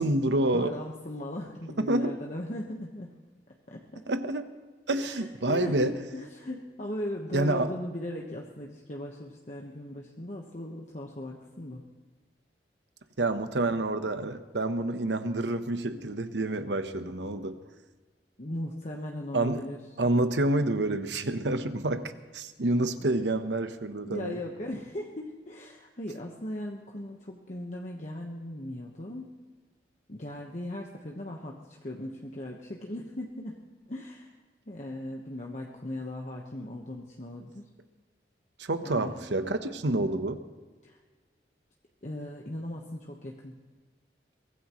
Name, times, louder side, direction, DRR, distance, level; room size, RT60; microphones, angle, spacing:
voice 1, 0.0-0.7 1.8-2.2 4.1-4.5 4.9-5.9 7.3-7.7 13.2-17.6 19.3-19.7 20.0-24.4 38.6-40.4, right 2 dB, 80° right, 9 dB, 1.0 m, -28 dB
voice 2, 0.5-3.1 3.7-4.0 5.0-11.8 18.4-19.8 23.0-23.2 24.1-29.3 30.1-31.6 31.8-33.5 33.9-34.3 34.6-37.6 38.8-39.2 40.8-41.0 42.0-43.6, left 1 dB, 40° left, 0 dB, 1.2 m, -38 dB
23.0 x 17.5 x 3.1 m, 1.4 s
head